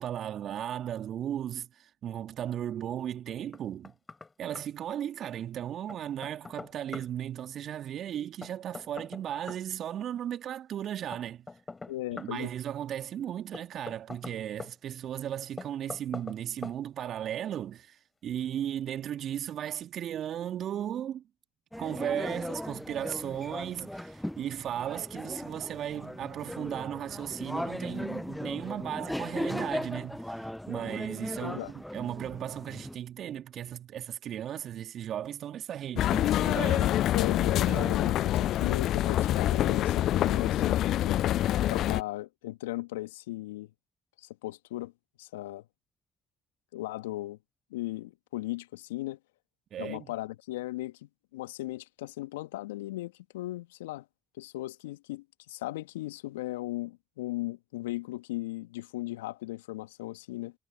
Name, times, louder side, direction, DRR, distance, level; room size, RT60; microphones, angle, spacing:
voice 1, 0.0-3.9 4.4-11.5 12.1-21.2 21.8-37.0 37.7-38.2 49.7-50.1, right 10 dB, 60° right, 2.6 m, -36 dB
Knock, 3.5-4.3 4.6-4.7 5.9-7.1 8.4-9.7 11.1-12.4 13.5-14.7 15.6-16.4 16.6-16.8, left 3 dB, 30° left, 6.6 m, -43 dB
voice 2, 11.9-12.5 31.4-31.7 37.1-41.2 41.7-43.7 44.2-44.9 45.2-45.6 46.7-47.4 47.7-49.2 49.8-54.1 54.4-60.5, left 17 dB, 80° left, 2.1 m, -37 dB
sound 1, 21.7-33.0, left 1 dB, 5° left, 0.6 m, -38 dB
sound 2, 36.0-42.0, left 13 dB, 65° left, 0.4 m, -26 dB
figure-of-eight pair, 40°, 0 cm